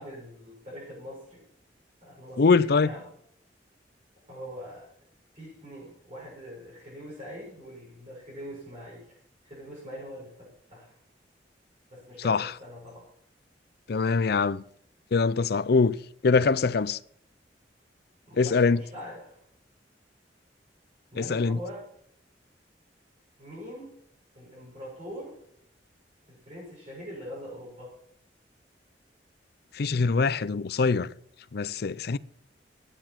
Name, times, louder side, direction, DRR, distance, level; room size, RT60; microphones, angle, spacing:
voice 1, 0.0-1.4 2.0-3.1 4.3-4.9 5.3-9.2 9.4-11.0 11.9-13.1 18.3-19.4 21.1-21.9 23.4-23.9 24.3-25.4 26.3-27.9, equal, 40° right, 7.1 m, -43 dB
voice 2, 2.4-2.9 12.2-12.5 13.9-14.6 15.1-15.9 16.2-17.0 18.4-18.8 21.2-21.6 29.7-31.1 31.5-32.2, left 4 dB, 60° left, 0.5 m, -23 dB
13.5 x 10.0 x 5.9 m
head